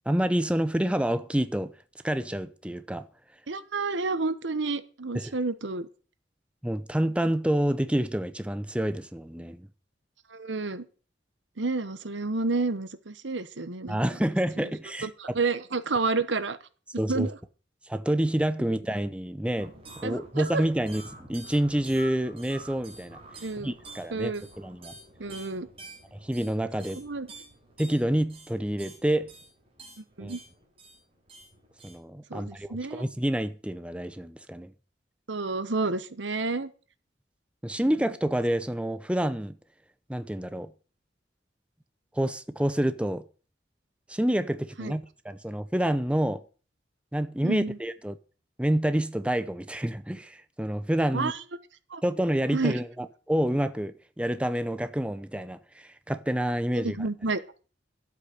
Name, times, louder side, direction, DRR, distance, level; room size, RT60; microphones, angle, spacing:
voice 1, 0.1-1.7 2.0-3.1 5.1-5.3 6.6-9.7 13.9-15.1 17.0-17.3 17.9-19.7 20.0-21.0 21.3-23.2 23.6-24.9 26.1-27.0 27.8-29.3 30.2-30.4 31.8-34.7 37.6-39.6 40.1-40.7 42.1-43.2 44.1-46.4 47.1-48.2 48.6-51.3 52.0-57.0, right 1 dB, 5° right, 0.6 m, -28 dB
voice 2, 3.5-5.9 10.3-10.9 11.6-14.0 14.6-14.7 15.0-16.6 17.1-17.4 20.0-20.6 23.4-23.7 24.1-24.4 25.2-25.7 27.0-27.3 30.0-30.4 32.3-33.1 35.3-36.7 44.8-44.9 47.4-47.8 51.1-51.4 51.9-52.0 52.5-52.8 56.8-57.4, right 3 dB, 80° right, 1.1 m, -30 dB
sound 1, 19.6-32.0, right 2 dB, 35° right, 4.2 m, -48 dB
12.0 x 8.3 x 6.6 m
head